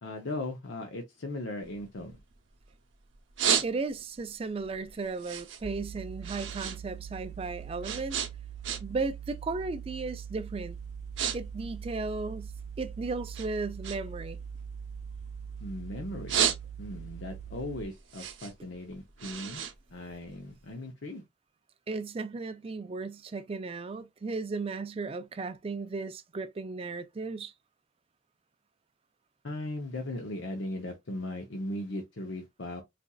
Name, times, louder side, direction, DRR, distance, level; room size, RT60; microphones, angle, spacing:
voice 1, 0.0-2.2 15.6-16.4 16.8-19.6 19.9-21.2 29.4-32.8, left 1 dB, 70° left, 0.7 m, -38 dB
sound 1, 1.6-2.7 3.1-4.2 4.6-6.8 7.1-9.1 9.4-9.7 10.3-10.5 10.8-11.4 11.6-12.9 13.3-15.7 16.0-17.1 17.5-20.6, right 8 dB, 85° right, 0.7 m, -33 dB
voice 2, 3.6-8.2 8.8-10.8 11.3-12.5 12.8-14.4 21.9-27.5, right 3 dB, 30° right, 0.4 m, -35 dB
sound 2, 5.6-17.8, right 7 dB, 35° left, 0.9 m, -42 dB
4.1 x 2.5 x 2.3 m
head